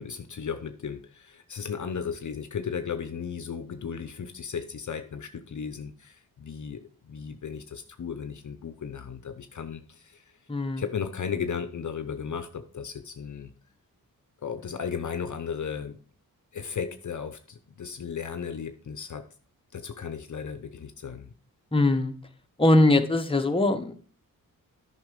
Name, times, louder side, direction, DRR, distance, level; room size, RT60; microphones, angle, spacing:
voice 1, 0.0-10.2 10.8-13.5 14.4-16.0 16.5-19.2 19.7-21.3, left 7 dB, 55° left, 9 dB, 0.8 m, -35 dB
voice 2, 10.5-10.8 21.7-22.1 22.6-24.0, left 2 dB, 15° left, 5 dB, 1.1 m, -21 dB
9.5 x 5.8 x 5.1 m, 0.43 s
cardioid pair, 80°, 36 cm